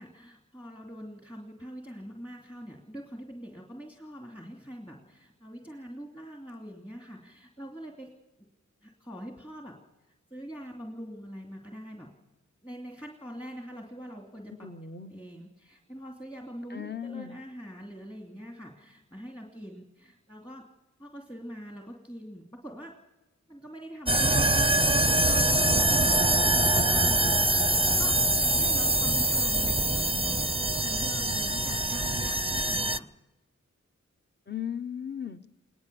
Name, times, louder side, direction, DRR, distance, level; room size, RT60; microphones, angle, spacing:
voice 1, 0.0-8.1 8.8-9.8 10.1-12.1 12.6-14.5 15.0-20.6 21.0-22.9 23.5-24.6 25.1-33.1, equal, 15° left, 0 dB, 2.7 m, -44 dB
voice 2, 14.6-15.1 16.7-17.4 34.5-35.4, left 8 dB, 35° left, 9 dB, 0.9 m, -37 dB
sound 1, 24.1-33.0, right 2 dB, 20° right, 0.6 m, -24 dB
20.0 x 19.5 x 7.0 m, 1.1 s
wide cardioid pair, 75°, 30 cm